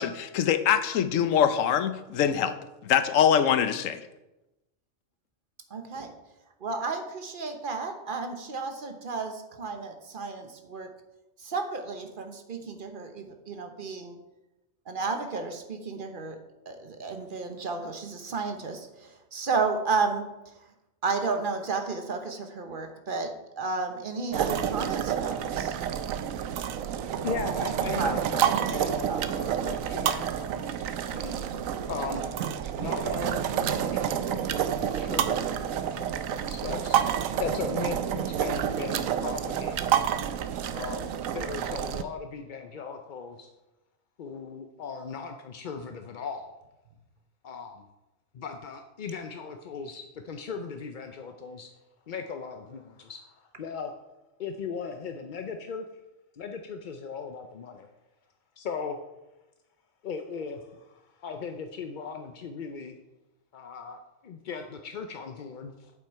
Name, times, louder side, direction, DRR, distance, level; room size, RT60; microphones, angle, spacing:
voice 1, 0.0-2.6 2.8-4.0, left 8 dB, 75° left, 11 dB, 1.1 m, -23 dB
voice 2, 5.7-6.1 6.6-10.9 11.4-14.2 14.9-16.4 16.7-20.3 21.0-25.7 27.9-28.1 28.5-28.8 29.1-29.2 31.4-31.5, right 4 dB, 45° right, 5 dB, 1.1 m, -32 dB
sound 1, 24.3-42.0, right 9 dB, 85° right, 1.0 m, -29 dB
voice 3, 27.2-29.1 29.4-30.8 31.1-31.5 31.9-32.2 32.8-40.1 40.5-43.5 44.2-46.5 47.4-47.9 48.3-51.7 52.1-53.9 54.4-55.9 56.3-57.9 58.6-59.0 60.0-63.0 63.5-65.9, left 5 dB, 55° left, 5 dB, 0.6 m, -38 dB
7.9 x 7.4 x 4.6 m, 0.98 s
omnidirectional pair, 1.4 m